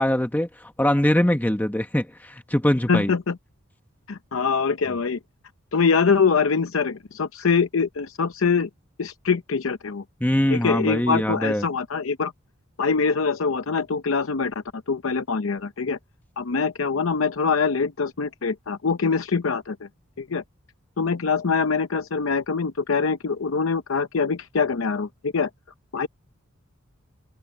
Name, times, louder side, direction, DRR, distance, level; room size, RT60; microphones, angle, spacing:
voice 1, 0.0-3.1 10.2-11.6, left 1 dB, 10° left, 1.0 m, -22 dB
voice 2, 2.9-3.4 4.1-5.2 5.7-8.7 9.0-10.0 10.5-12.3 12.8-14.5 14.9-16.0 16.4-19.9 20.2-20.4 21.0-25.5 25.9-26.1, left 5 dB, 75° left, 0.7 m, -24 dB
head